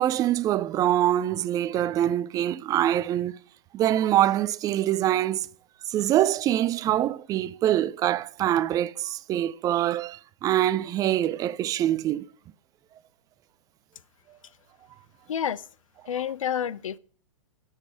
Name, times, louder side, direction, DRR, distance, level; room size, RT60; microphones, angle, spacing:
voice 1, 0.0-3.4 3.7-5.5 5.9-12.3, right 12 dB, 20° right, 0.5 m, -24 dB
voice 2, 15.3-15.6 16.1-17.0, left 9 dB, 70° left, 0.8 m, -29 dB
12.0 x 7.5 x 7.7 m
figure-of-eight pair, 115°, 18 cm